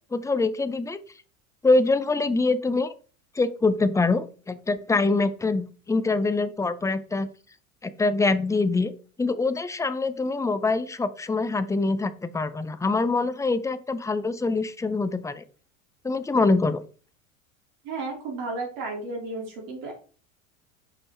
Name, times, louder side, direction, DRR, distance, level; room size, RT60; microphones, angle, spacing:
voice 1, 0.1-1.0 1.6-2.9 3.3-7.3 7.8-8.9 9.2-15.4 16.0-16.8, left 3 dB, 10° left, 12 dB, 0.6 m, -24 dB
voice 2, 17.8-19.9, right 3 dB, 55° right, -1 dB, 2.9 m, -33 dB
5.7 x 5.2 x 4.2 m, 0.39 s
hypercardioid pair, 85°, 41 cm